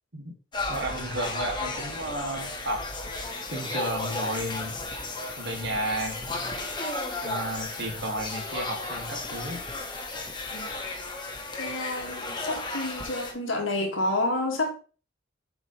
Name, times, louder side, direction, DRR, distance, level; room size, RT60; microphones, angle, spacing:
sound 1, 0.5-13.3, left 2 dB, 25° left, 1.5 m, -34 dB
voice 1, 0.7-2.8 3.5-4.8 5.4-6.4 7.2-9.6, right 1 dB, 65° right, 2.1 m, -32 dB
voice 2, 11.6-14.7, left 2 dB, 80° left, 2.0 m, -29 dB
7.8 x 5.3 x 3.2 m
head